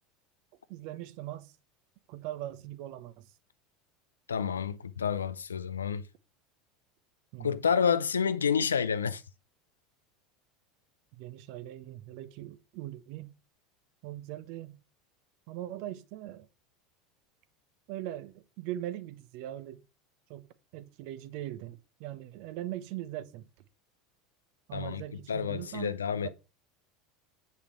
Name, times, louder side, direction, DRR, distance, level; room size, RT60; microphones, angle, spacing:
voice 1, 0.7-1.5 2.1-3.3 7.3-7.6 11.2-13.4 14.0-14.8 15.5-16.5 17.9-19.8 20.3-20.5 20.7-23.5 24.7-26.3, right 13 dB, 55° right, 0.9 m, -40 dB
voice 2, 4.3-6.0 7.4-9.2 24.7-25.0 25.3-26.3, left 7 dB, 80° left, 0.6 m, -29 dB
8.5 x 5.6 x 4.7 m
figure-of-eight pair, 75°, 0 cm